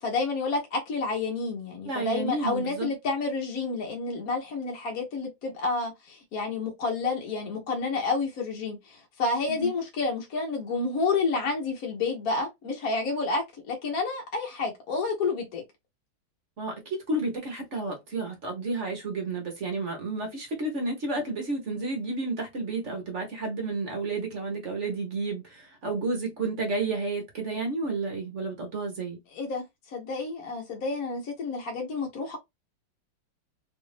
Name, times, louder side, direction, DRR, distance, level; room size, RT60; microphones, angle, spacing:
voice 1, 0.0-15.6 29.3-32.4, left 4 dB, 55° left, 1.2 m, -30 dB
voice 2, 1.8-2.9 9.5-9.7 16.6-29.2, right 3 dB, 50° right, 1.0 m, -31 dB
3.3 x 2.5 x 3.2 m
omnidirectional pair, 2.1 m